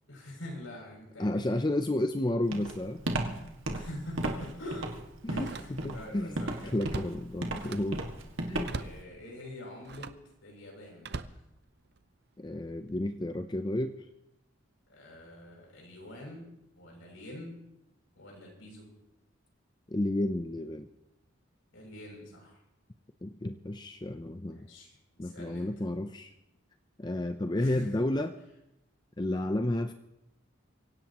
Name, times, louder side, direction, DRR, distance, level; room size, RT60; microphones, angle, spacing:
voice 1, 0.1-1.6 3.7-4.8 5.3-6.8 7.5-7.7 8.7-10.1 10.4-11.4 14.9-16.5 16.8-17.6 18.2-18.9 21.7-22.6 24.5-24.9 25.2-25.7 27.5-28.0, left 1 dB, 80° left, 0 dB, 7.0 m, -45 dB
voice 2, 1.2-3.1 5.2-5.5 5.8-6.4 6.7-8.0 8.5-8.8 12.4-14.0 19.9-20.9 23.2-24.7 25.2-26.3 27.0-28.3 29.2-29.9, left 1 dB, 20° left, 8 dB, 0.5 m, -31 dB
Walk footsteps, 2.5-9.0, right 2 dB, 85° right, 1.9 m, -34 dB
Slam, 3.9-4.0 5.3-6.1 6.4-8.0 8.6-9.1 9.8-10.3 11.0-12.1 12.7-13.0, right 3 dB, 55° right, 0.7 m, -42 dB
25.0 x 16.5 x 3.0 m, 0.87 s
head